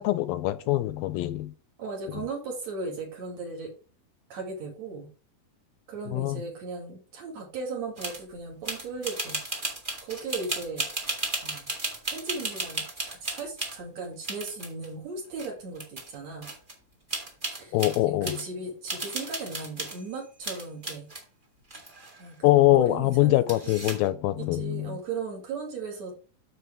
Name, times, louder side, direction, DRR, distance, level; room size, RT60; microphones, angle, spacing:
voice 1, 0.0-1.5 6.1-6.4 17.7-18.4 22.4-25.0, left 16 dB, 85° left, 2.4 m, -23 dB
voice 2, 1.8-3.7 4.3-5.1 5.9-9.4 10.0-10.9 11.4-11.7 12.1-16.5 17.6-17.8 18.1-21.1 22.2-23.4 24.5-26.1, right 4 dB, 50° right, 3.1 m, -37 dB
sound 1, 8.0-8.2 8.6-13.8 14.2-14.9 15.4-15.5 15.7-16.1 16.4-16.7 17.1-18.4 18.9-20.0 20.4-21.2 21.7-22.5 23.5-24.1, right 2 dB, 25° right, 1.0 m, -34 dB
9.4 x 6.8 x 3.7 m
omnidirectional pair, 4.3 m